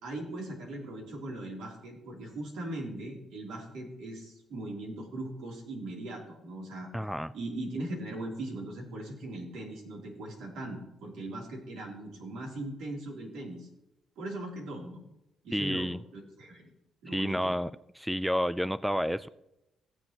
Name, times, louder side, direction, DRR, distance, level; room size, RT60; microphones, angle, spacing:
voice 1, 0.0-6.9 7.3-13.7 14.2-15.0 15.4-15.9 16.4-16.7 17.0-17.5, right 1 dB, 85° right, -1 dB, 3.1 m, -39 dB
voice 2, 6.9-7.3 15.5-16.0 17.1-17.7 18.0-19.3, equal, ahead, 17 dB, 0.3 m, -30 dB
17.0 x 7.5 x 2.9 m, 0.89 s
cardioid pair, 90°, 0 cm